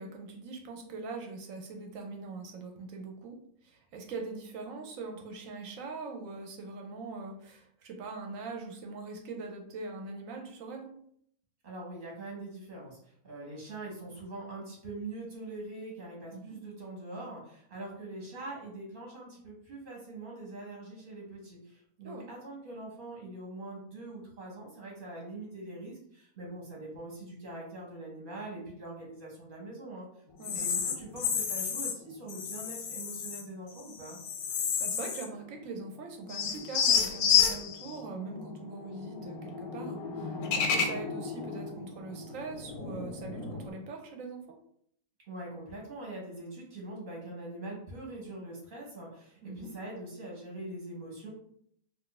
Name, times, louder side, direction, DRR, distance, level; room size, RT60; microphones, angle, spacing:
voice 1, 0.0-10.9 16.3-16.6 22.0-22.3 30.4-30.7 34.8-44.6 49.4-49.7, right 3 dB, 70° right, 3 dB, 0.9 m, -42 dB
voice 2, 11.6-13.0 13.2-30.1 30.5-34.2 45.3-51.3, right 2 dB, 40° right, -3 dB, 0.9 m, -43 dB
sound 1, 30.4-32.0 32.3-33.4 33.8-35.4 35.7-35.8 36.3-43.7, left 7 dB, 85° left, 1.1 m, -31 dB
2.5 x 2.4 x 3.8 m, 0.67 s
omnidirectional pair, 1.5 m